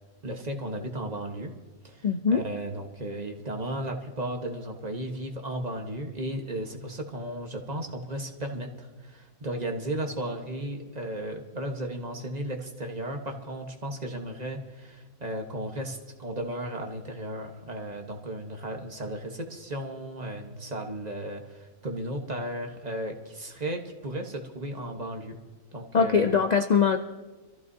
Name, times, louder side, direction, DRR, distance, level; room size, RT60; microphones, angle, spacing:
voice 1, 0.2-1.5 1.8-25.4 25.7-26.4, right 1 dB, 30° right, 3 dB, 1.2 m, -35 dB
voice 2, 2.0-2.4 25.9-27.0, left 6 dB, 75° left, 5 dB, 0.4 m, -22 dB
25.5 x 14.5 x 2.7 m, 1.3 s
omnidirectional pair, 1.5 m